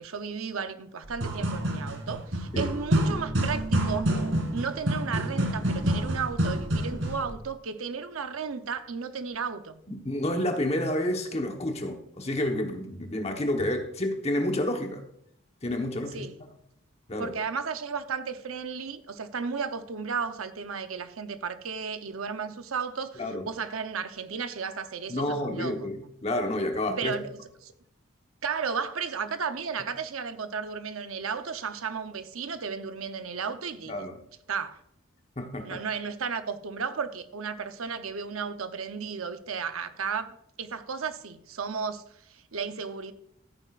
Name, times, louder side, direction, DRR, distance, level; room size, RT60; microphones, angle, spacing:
voice 1, 0.0-4.2 4.5-9.8 16.1-16.4 17.2-25.9 27.0-27.7 28.4-33.9 34.5-34.8 35.6-43.1, right 6 dB, 85° right, 0.8 m, -34 dB
sound 1, 1.0-7.3, right 1 dB, 65° right, 2.5 m, -28 dB
voice 2, 9.9-15.0 15.6-16.3 17.1-17.3 23.2-23.4 25.1-27.1 33.9-34.2 35.4-35.8, left 1 dB, 30° left, 1.1 m, -29 dB
14.0 x 9.0 x 2.5 m
head